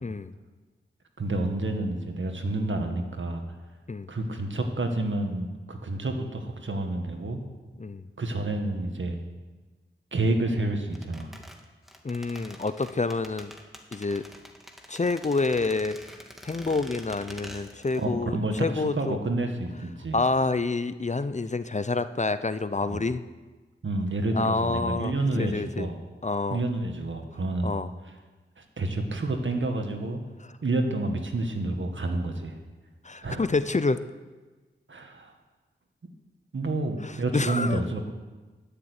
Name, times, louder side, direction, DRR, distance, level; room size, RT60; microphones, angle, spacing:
voice 1, 0.0-0.3 3.9-4.1 7.8-8.0 12.0-13.5 13.9-14.2 14.9-16.0 16.4-19.2 20.1-23.2 24.3-25.9 26.2-26.6 27.6-27.9 33.0-34.0 37.0-37.8, left 3 dB, 35° left, 13 dB, 0.7 m, -28 dB
voice 2, 1.2-3.4 4.1-7.4 8.2-9.2 10.1-11.3 17.9-20.2 22.8-23.0 23.8-26.0 26.5-27.7 28.6-30.2 30.6-32.6 33.2-33.4 34.9-35.3 36.5-38.1, right 2 dB, 65° right, 4 dB, 1.9 m, -29 dB
sound 1, 10.9-18.1 18.4-18.5, equal, ahead, 1.9 m, -46 dB
13.5 x 6.9 x 9.6 m, 1.3 s
cardioid pair, 45°, 21 cm